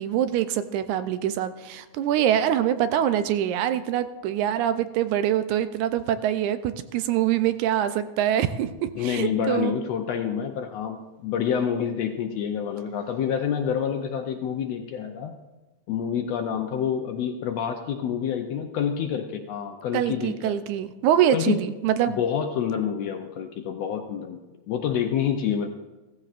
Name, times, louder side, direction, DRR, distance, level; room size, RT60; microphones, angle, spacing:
voice 1, 0.0-9.7 19.9-22.2, right 10 dB, 80° right, 11 dB, 1.9 m, -24 dB
voice 2, 9.0-15.3 15.9-20.6 21.3-21.6 22.1-25.7, left 8 dB, 75° left, 5 dB, 1.6 m, -28 dB
16.0 x 14.5 x 2.5 m, 1.2 s
omnidirectional pair, 3.5 m